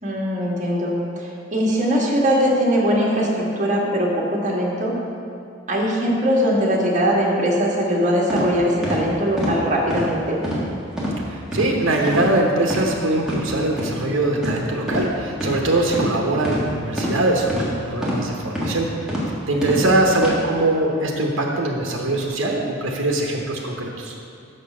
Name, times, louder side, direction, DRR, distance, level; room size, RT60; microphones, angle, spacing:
voice 1, 0.0-4.9 5.7-10.4 19.5-19.9, equal, 40° right, -3 dB, 1.6 m, -21 dB
sound 1, 8.3-8.4 8.8-9.0 9.4-9.5 9.9-10.1 10.4-10.6 11.0-11.1 11.5-11.7 12.1-12.3 12.6-12.8 13.2-13.4 13.8-13.9 14.4-14.6 14.9-15.1 15.4-15.6 15.9-16.1 16.4-16.6 17.0-17.1 17.5-17.7 18.0-18.2 18.6-18.7 19.1-19.2 19.6-19.8 20.2-20.3, equal, 5° right, 1.6 m, -25 dB
voice 2, 11.3-18.9 19.5-24.1, right 2 dB, 75° right, 0 dB, 0.9 m, -22 dB
6.7 x 6.3 x 6.1 m, 2.6 s
head